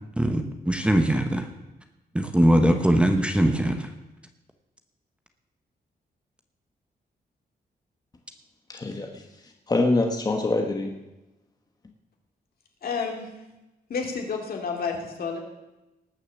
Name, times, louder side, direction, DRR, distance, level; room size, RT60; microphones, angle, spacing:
voice 1, 0.2-1.5 2.1-3.9, right 1 dB, 5° right, 5 dB, 0.9 m, -21 dB
voice 2, 8.7-10.9, left 2 dB, 25° left, 3 dB, 1.1 m, -25 dB
voice 3, 12.8-13.3 13.9-15.4, left 5 dB, 65° left, 2 dB, 2.4 m, -30 dB
19.0 x 6.5 x 7.2 m, 1.0 s
wide cardioid pair, 150°, 17 cm